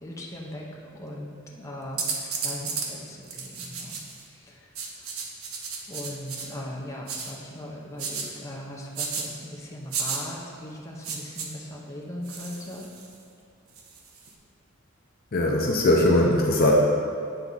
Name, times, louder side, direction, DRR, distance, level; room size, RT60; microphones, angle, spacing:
voice 1, 0.0-4.0 4.3-5.1 5.9-12.9, left 1 dB, 15° left, -4 dB, 0.8 m, -39 dB
sound 1, 2.0-2.9 3.3-4.2 4.7-6.5 7.1-7.3 8.0-8.3 8.9-9.2 9.9-10.2 11.0-11.5 12.2-13.1 13.8-14.3, right 5 dB, 85° right, 0.8 m, -33 dB
voice 2, 15.3-16.7, left 1 dB, 45° left, -1 dB, 0.6 m, -20 dB
9.0 x 3.5 x 4.0 m, 2.4 s
head